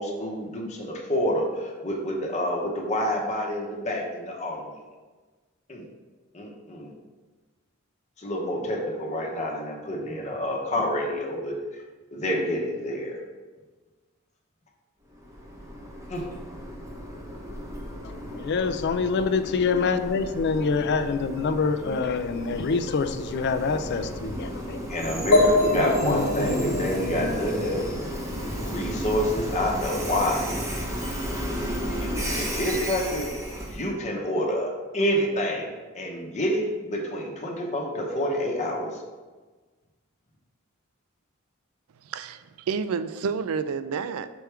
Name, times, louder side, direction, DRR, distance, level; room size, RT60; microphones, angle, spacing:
voice 1, 0.0-4.7 5.7-5.8 6.3-6.9 8.2-11.6 12.1-13.2 16.1-16.2 24.9-27.8 28.6-30.7 32.0-33.3 33.7-39.0, equal, 35° left, -1 dB, 0.9 m, -28 dB
Train, 15.1-33.9, equal, 15° right, 0.7 m, -34 dB
voice 2, 18.0-24.8 25.4-27.4 27.7-27.8, left 4 dB, 50° left, 10 dB, 0.3 m, -27 dB
sound 1, 25.3-29.0, left 2 dB, 85° left, 0.8 m, -26 dB
voice 3, 42.0-44.3, right 5 dB, 80° right, 12 dB, 0.4 m, -29 dB
6.1 x 3.4 x 4.5 m, 1.3 s
head